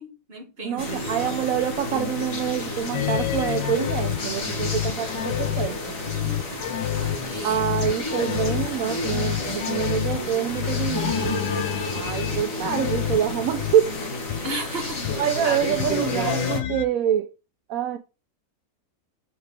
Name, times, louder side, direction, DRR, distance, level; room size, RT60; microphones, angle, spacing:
voice 1, 0.0-1.4 6.1-8.1 12.0-12.8 14.4-15.7, right 1 dB, 35° right, 1.9 m, -36 dB
voice 2, 0.6-5.8 7.4-11.1 11.9-14.0 15.2-17.3 17.7-18.0, right 10 dB, 70° right, 0.8 m, -26 dB
sound 1, 0.8-16.6, left 2 dB, 50° left, 2.0 m, -31 dB
sound 2, 2.9-13.7 14.3-14.4 15.0-15.2 15.4-16.9, left 13 dB, 90° left, 1.3 m, -29 dB
sound 3, 10.9-15.1 15.3-15.4 15.8-15.9, left 1 dB, 20° left, 0.5 m, -34 dB
6.6 x 4.7 x 3.4 m
omnidirectional pair, 1.9 m